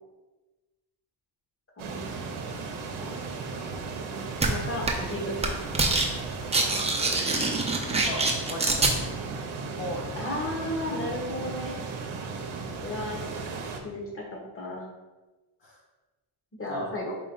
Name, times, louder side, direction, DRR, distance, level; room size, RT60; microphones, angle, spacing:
voice 1, 1.8-2.3 3.0-3.2 4.3-5.3 10.2-11.8 12.8-13.2 13.8-14.9 16.6-17.1, left 1 dB, 25° left, -1 dB, 1.3 m, -34 dB
sound 1, 1.8-13.8, right 4 dB, 80° right, 0.8 m, -36 dB
sound 2, 4.4-4.5 4.9-5.1 5.4-6.1 6.3-8.9, right 3 dB, 15° right, 0.6 m, -24 dB
voice 2, 7.9-8.9 9.8-10.3 15.6-15.8 16.7-16.9, left 1 dB, 60° left, -1 dB, 0.8 m, -37 dB
4.6 x 3.0 x 3.7 m, 1.2 s
cardioid pair, 95°, 47 cm